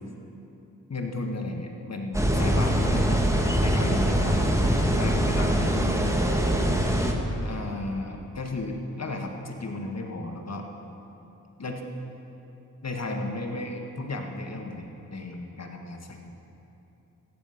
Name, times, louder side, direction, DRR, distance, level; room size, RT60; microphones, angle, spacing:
voice 1, 0.9-3.3 3.6-4.5 5.0-6.3 7.4-10.7 11.6-11.8 12.8-16.3, left 2 dB, 45° left, 2 dB, 1.8 m, -34 dB
sound 1, 2.1-7.1, equal, 10° right, 1.6 m, -23 dB
14.0 x 9.7 x 5.8 m, 3.0 s
cardioid pair, 45°, 35 cm